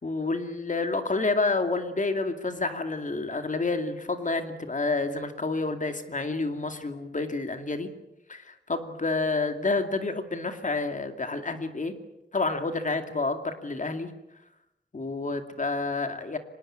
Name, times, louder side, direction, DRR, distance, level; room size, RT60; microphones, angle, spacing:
voice 1, 0.0-7.9 8.3-11.9 12.3-14.1 14.9-16.4, left 3 dB, 45° left, 7 dB, 2.5 m, -29 dB
25.0 x 20.0 x 8.9 m, 0.89 s
wide cardioid pair, 120°, 18 cm